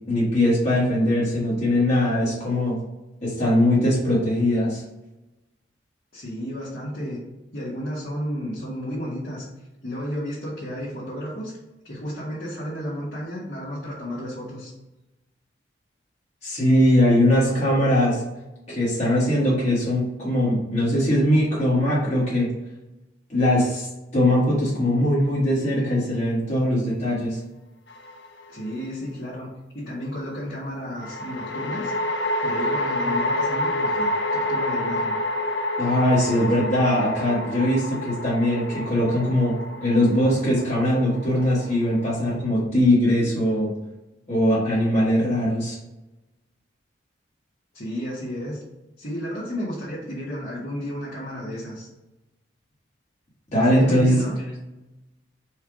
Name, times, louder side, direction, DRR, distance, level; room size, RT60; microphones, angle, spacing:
voice 1, 0.1-2.8 3.2-4.8 16.4-18.2 18.7-22.5 23.3-27.4 35.8-43.7 44.3-45.8 53.5-54.2, left 1 dB, 40° left, -8 dB, 1.4 m, -21 dB
voice 2, 6.1-7.2 7.5-9.5 9.8-11.5 11.8-14.7 28.5-29.5 29.7-31.9 32.4-35.1 47.7-48.6 49.0-51.9 53.7-54.6, equal, 55° left, -7 dB, 1.2 m, -32 dB
sound 1, 27.9-28.6 31.0-42.4, left 1 dB, 80° left, 0.5 m, -28 dB
4.4 x 2.4 x 4.7 m, 1.0 s
head